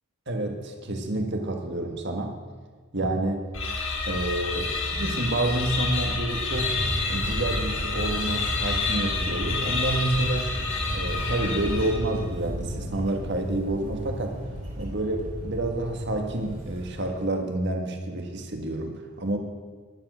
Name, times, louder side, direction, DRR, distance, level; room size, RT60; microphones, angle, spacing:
voice 1, 0.3-2.4 2.9-3.5 4.0-6.7 7.1-10.5 10.9-14.4 14.8-19.4, right 1 dB, 50° right, 4 dB, 1.6 m, -29 dB
sound 1, 3.5-12.2, left 3 dB, 55° left, 2.2 m, -29 dB
sound 2, 6.5-17.1, equal, 35° right, 3.2 m, -34 dB
13.0 x 10.5 x 6.3 m, 1.5 s
head